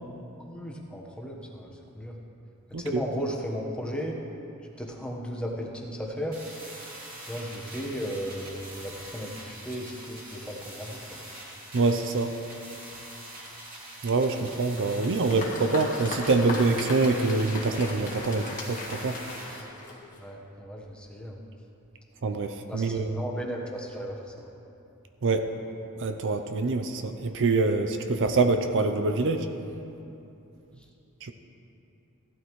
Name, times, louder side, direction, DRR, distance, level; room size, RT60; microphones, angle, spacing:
voice 1, 0.4-2.2 2.7-4.2 4.6-6.4 7.3-11.2 20.2-21.4 22.7-24.5, equal, 5° left, -1 dB, 1.2 m, -35 dB
sound 1, 6.3-19.6, right 1 dB, 40° right, 2.7 m, -44 dB
voice 2, 11.7-12.3 14.0-19.2 22.2-23.2 25.2-25.5 26.0-29.5 31.2-31.3, right 3 dB, 60° right, 7 dB, 0.6 m, -25 dB
Applause, 14.8-20.3, left 2 dB, 35° left, 1.6 m, -38 dB
16.0 x 12.0 x 3.2 m, 2.8 s
head